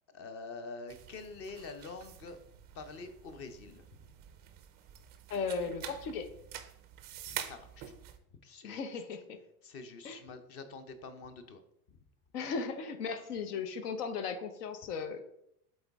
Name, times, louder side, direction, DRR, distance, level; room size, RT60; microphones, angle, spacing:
voice 1, 0.1-2.4 2.7-3.8 7.3-7.9 8.4-9.0 9.6-11.6 11.9-12.0, left 3 dB, 30° left, 9 dB, 0.6 m, -46 dB
sound 1, 0.9-8.2, right 10 dB, 25° right, 0.3 m, -47 dB
voice 2, 5.3-6.3 8.6-9.4 10.0-10.2 12.3-15.2, left 5 dB, 80° left, 8 dB, 1.1 m, -36 dB
7.9 x 4.0 x 3.5 m, 0.76 s
supercardioid pair, 140°, 45 cm